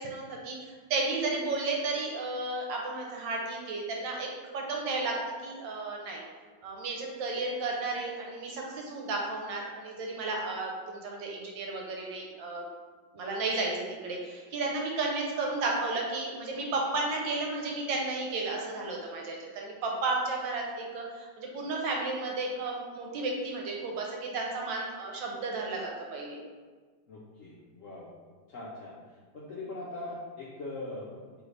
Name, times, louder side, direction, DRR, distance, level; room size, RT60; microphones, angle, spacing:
voice 1, 0.0-4.3 4.5-5.1 5.4-6.2 6.6-12.7 13.1-26.4, right 3 dB, 75° right, -1 dB, 1.4 m, -33 dB
voice 2, 27.1-28.1 28.5-28.9 29.3-31.4, left 2 dB, 70° left, -6 dB, 0.7 m, -41 dB
3.8 x 3.2 x 3.2 m, 1.4 s
omnidirectional pair, 2.1 m